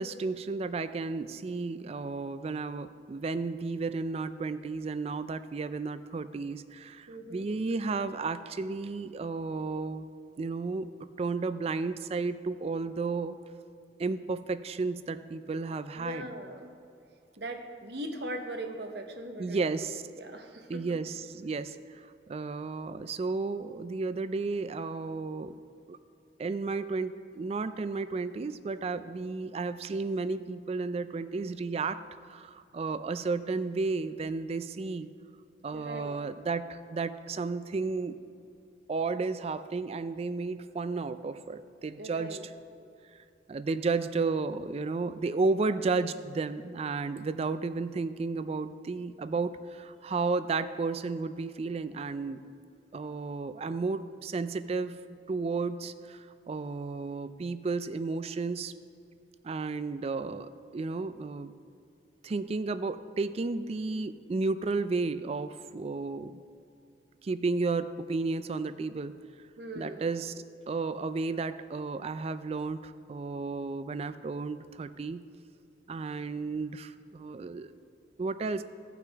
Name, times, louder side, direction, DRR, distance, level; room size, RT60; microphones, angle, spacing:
voice 1, 0.0-10.1 10.4-10.9 11.2-13.4 14.0-16.3 19.4-20.0 20.7-25.6 25.9-26.0 26.4-32.0 32.3-35.1 35.6-38.2 38.9-42.4 43.5-52.4 52.9-55.0 55.3-58.7 59.4-61.5 62.2-66.4 67.2-69.1 69.8-70.3 70.7-75.2 75.9-77.7 78.2-78.6, right 3 dB, 35° right, 13 dB, 0.3 m, -33 dB
voice 2, 7.1-7.5 16.0-16.7 17.4-19.7 20.1-20.8 35.7-36.2 42.0-42.4 69.6-70.0, right 1 dB, 60° right, 4 dB, 1.0 m, -40 dB
16.0 x 5.8 x 3.5 m, 2.5 s
head